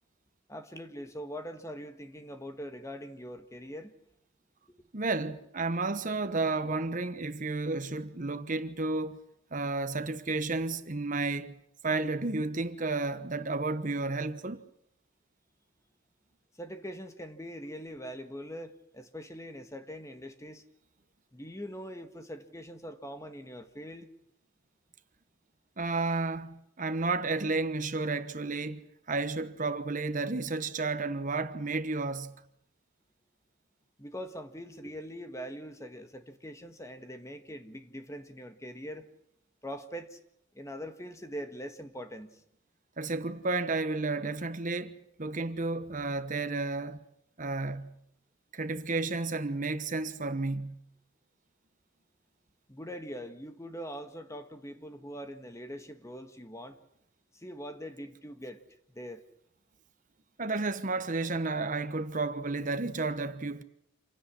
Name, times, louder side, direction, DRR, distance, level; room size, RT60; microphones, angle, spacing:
voice 1, 0.5-3.9 16.6-20.6 21.3-24.1 34.0-39.1 39.6-40.2 40.5-42.4 52.7-56.8 57.3-58.6 58.9-59.2, equal, 15° left, 1.6 m, -42 dB
voice 2, 4.9-9.2 9.5-11.5 11.8-14.6 25.8-32.3 43.0-44.9 45.2-47.0 47.4-47.9 48.5-50.8 60.4-63.6, right 3 dB, 40° right, 1.1 m, -32 dB
27.5 x 16.5 x 9.9 m
head